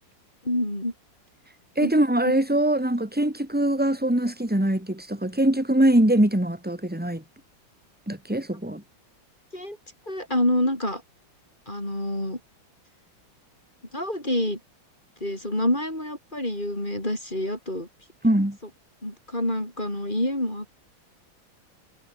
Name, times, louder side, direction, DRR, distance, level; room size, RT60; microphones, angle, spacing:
voice 1, 0.4-0.9 1.8-1.9 2.2-2.4 9.5-9.8 10.1-11.0 11.7-12.4 13.9-14.6 15.2-17.9 19.0-20.7, left 1 dB, 25° left, 7.0 m, -27 dB
voice 2, 1.8-7.2 8.1-8.8 18.2-18.6, right 1 dB, 5° right, 3.6 m, -22 dB
omnidirectional pair, 2.2 m